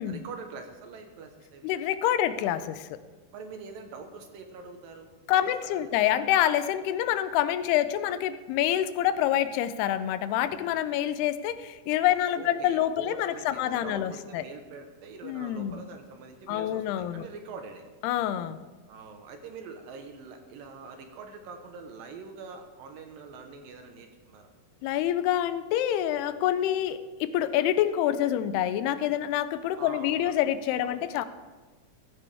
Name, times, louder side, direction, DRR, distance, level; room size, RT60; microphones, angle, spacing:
voice 1, 0.0-1.7 3.3-5.1 5.4-5.9 12.3-17.8 18.9-24.5 29.8-30.3 30.8-31.1, right 4 dB, 70° right, 5 dB, 2.6 m, -44 dB
voice 2, 1.6-3.0 5.3-14.4 15.2-15.8 16.5-17.3 18.0-18.6 24.8-31.2, left 11 dB, 90° left, 12 dB, 2.7 m, -27 dB
15.5 x 15.0 x 3.5 m, 1.3 s
omnidirectional pair, 4.5 m